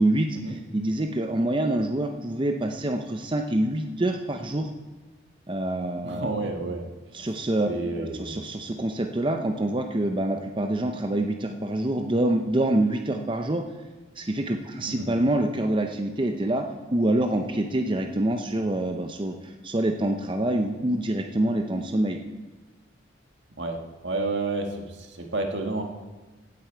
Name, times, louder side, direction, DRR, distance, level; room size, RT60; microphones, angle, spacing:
voice 1, 0.0-4.7 5.5-6.3 7.1-13.6 14.2-16.6 16.9-22.2, right 1 dB, 25° right, 4 dB, 0.6 m, -26 dB
voice 2, 6.0-6.8 7.7-8.3 14.9-15.1 23.6-25.8, right 2 dB, 75° right, 3 dB, 1.7 m, -30 dB
16.0 x 8.6 x 4.6 m, 1.3 s
head